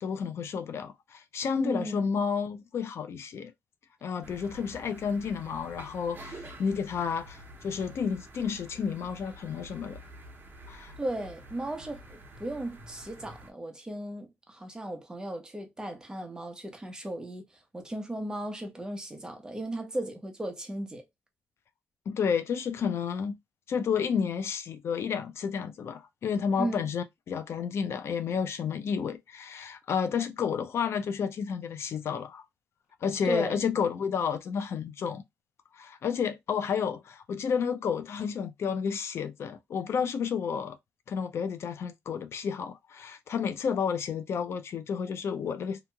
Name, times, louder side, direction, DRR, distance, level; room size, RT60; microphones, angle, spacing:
voice 1, 0.0-3.5 4.0-10.0 10.7-10.9 22.1-23.4 23.7-32.4 33.0-35.2 35.7-40.8 41.1-45.8, left 6 dB, 70° left, 0.4 m, -31 dB
voice 2, 1.6-2.1 11.0-17.4 17.7-21.0 26.6-26.9 33.2-33.6, right 1 dB, 15° right, 0.8 m, -36 dB
sound 1, 4.2-13.5, right 1 dB, 45° right, 1.0 m, -48 dB
2.9 x 2.7 x 2.2 m
cardioid pair, 100°, 5 cm